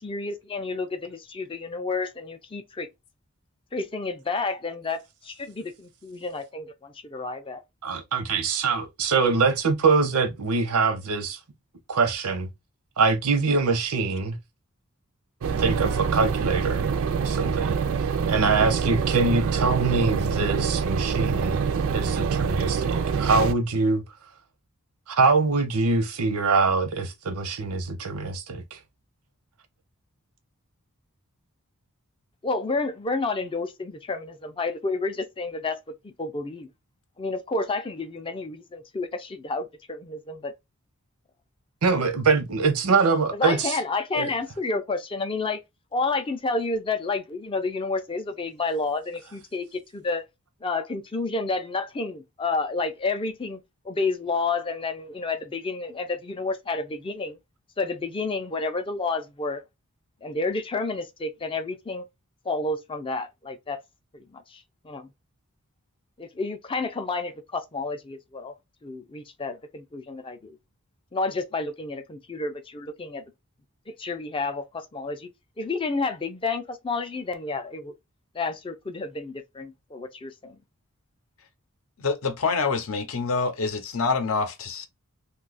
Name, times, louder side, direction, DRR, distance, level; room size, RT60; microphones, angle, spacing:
voice 1, 0.0-2.9 3.7-7.6 32.4-36.7 37.2-40.5 43.3-45.6 45.9-50.2 50.6-57.4 57.8-59.6 60.2-62.0 62.5-63.8 64.1-65.1 66.2-68.5 68.8-70.6 71.1-73.2 73.9-75.3 75.6-77.9 78.3-80.6, left 3 dB, 25° left, 0.4 m, -30 dB
voice 2, 7.8-11.4 11.9-12.5 13.0-14.4 15.6-16.9 17.2-21.6 21.9-24.0 25.1-28.8 41.8-43.8 44.1-44.3, right 4 dB, 85° right, 0.7 m, -24 dB
sound 1, 15.4-23.5, right 6 dB, 60° right, 0.4 m, -25 dB
voice 3, 82.0-84.9, left 4 dB, 65° left, 0.6 m, -26 dB
2.7 x 2.3 x 3.9 m
head